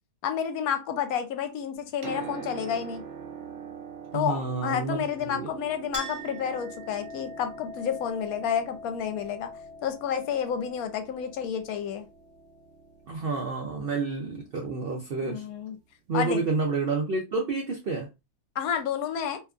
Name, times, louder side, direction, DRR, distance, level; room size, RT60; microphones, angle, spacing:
voice 1, 0.2-3.0 4.1-9.5 9.8-12.1 15.2-15.8 16.1-16.4 18.6-19.4, left 8 dB, 75° left, 1.0 m, -30 dB
Piano, 1.8-15.5 16.6-16.7, right 7 dB, 65° right, 0.8 m, -45 dB
voice 2, 4.1-5.5 13.1-15.4 16.1-18.1, right 4 dB, 80° right, 0.5 m, -29 dB
Chink clink, 5.9-13.0, left 1 dB, 40° right, 1.0 m, -43 dB
2.8 x 2.3 x 2.4 m
omnidirectional pair, 1.6 m